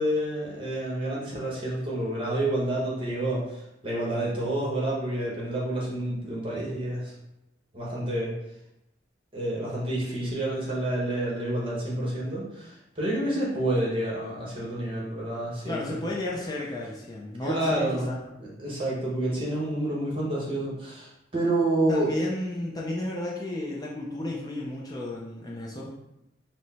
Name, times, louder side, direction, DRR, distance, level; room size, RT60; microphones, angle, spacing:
voice 1, 0.0-7.1 7.7-8.3 9.3-16.0 17.4-18.1 18.4-22.1, right 1 dB, 30° right, -4 dB, 1.2 m, -29 dB
voice 2, 15.6-18.2 18.5-18.6 21.9-25.9, left 1 dB, 20° left, -4 dB, 0.5 m, -33 dB
4.7 x 2.1 x 4.1 m, 0.85 s
head